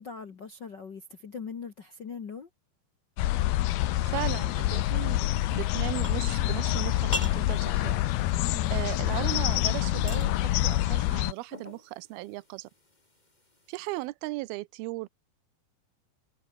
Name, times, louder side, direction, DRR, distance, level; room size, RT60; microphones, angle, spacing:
voice 1, 0.0-2.5 8.4-8.8, left 5 dB, 55° left, 1.2 m, -41 dB
sound 1, 3.2-11.3, left 15 dB, 75° left, 2.9 m, -27 dB
voice 2, 4.0-8.0 8.7-12.7 13.7-15.1, right 20 dB, 80° right, 2.6 m, -37 dB
sound 2, 4.5-14.1, left 2 dB, 10° left, 2.7 m, -45 dB
omnidirectional pair, 4.5 m